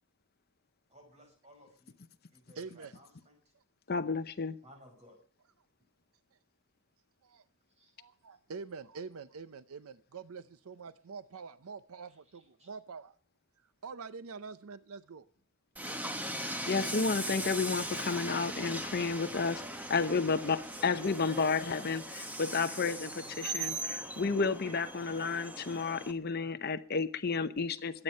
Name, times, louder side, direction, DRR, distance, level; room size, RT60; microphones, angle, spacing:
voice 1, 0.9-2.0 2.3-3.4 4.6-5.2 7.8-7.9 12.1-12.7 23.4-23.9 24.6-24.9 25.4-25.6 26.6-26.7, equal, 30° right, 5.4 m, -59 dB
voice 2, 2.5-2.9 7.2-7.4 8.0-13.1 13.8-15.3, right 5 dB, 75° right, 0.6 m, -45 dB
voice 3, 3.9-4.5 16.7-19.6 19.9-28.0, left 4 dB, 45° left, 0.7 m, -31 dB
Train, 15.8-26.1, right 1 dB, 5° right, 1.1 m, -39 dB
22.0 x 9.0 x 5.4 m
head